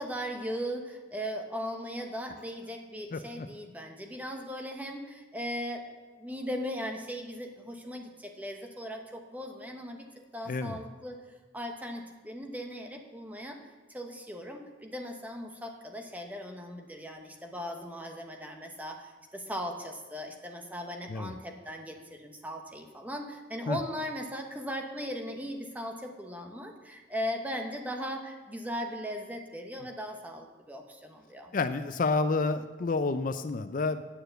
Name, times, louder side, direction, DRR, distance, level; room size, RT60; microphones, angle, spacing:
voice 1, 0.0-5.9 6.2-10.1 10.3-11.2 11.5-13.6 13.9-31.5, equal, 10° right, 3 dB, 1.0 m, -38 dB
voice 2, 3.1-3.5 10.5-10.8 21.1-21.3 23.7-23.8 31.5-34.0, left 3 dB, 45° left, 9 dB, 0.4 m, -29 dB
9.0 x 6.6 x 7.9 m, 1.3 s
head